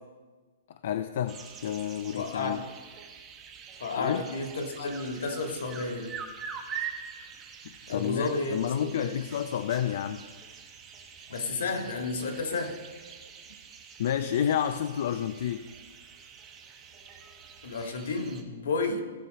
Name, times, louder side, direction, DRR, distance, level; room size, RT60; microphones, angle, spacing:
voice 1, 0.7-2.6 4.0-4.2 7.9-10.2 14.0-15.6, left 9 dB, 55° left, 9 dB, 0.4 m, -30 dB
sound 1, 1.3-18.4, right 7 dB, 20° right, 0.9 m, -45 dB
voice 2, 2.1-2.6 3.8-6.2 7.9-9.2 11.3-12.8 17.6-19.0, left 3 dB, 75° left, 4 dB, 1.9 m, -32 dB
16.5 x 6.1 x 4.1 m, 1.4 s
hypercardioid pair, 165°, 0 cm